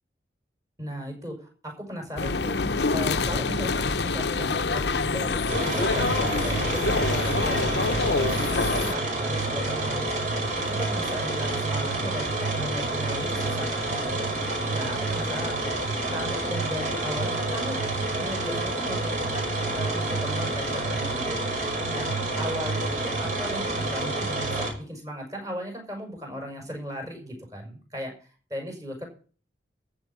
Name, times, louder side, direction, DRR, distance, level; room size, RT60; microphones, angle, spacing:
voice 1, 0.8-2.6 2.9-8.4 8.7-10.1 10.6-14.2 14.7-15.7 16.1-17.8 18.2-21.4 21.9-29.1, equal, 20° right, 3 dB, 6.1 m, -36 dB
sound 1, 2.2-8.9, left 3 dB, 70° left, 0.8 m, -26 dB
sound 2, 5.5-24.7, right 2 dB, 45° right, 5.4 m, -28 dB
14.5 x 5.8 x 9.4 m, 0.39 s
head